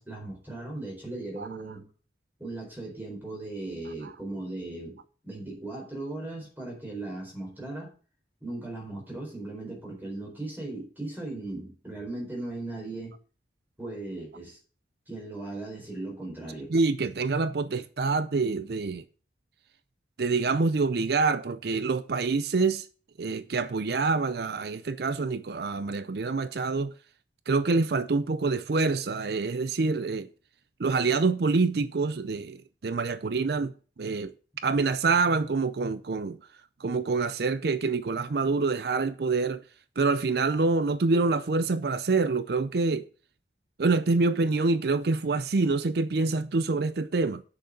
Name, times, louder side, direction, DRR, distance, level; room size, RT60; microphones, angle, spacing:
voice 1, 0.0-1.8 2.4-7.9 8.4-13.1 13.8-14.6 15.1-16.7, right 2 dB, 10° right, 4.2 m, -37 dB
voice 2, 16.7-19.0 20.2-22.9 23.2-26.9 27.5-30.3 30.8-34.3 34.6-36.4 36.8-39.6 40.0-43.1 43.8-47.4, right 3 dB, 55° right, 0.5 m, -26 dB
8.2 x 6.5 x 6.5 m
head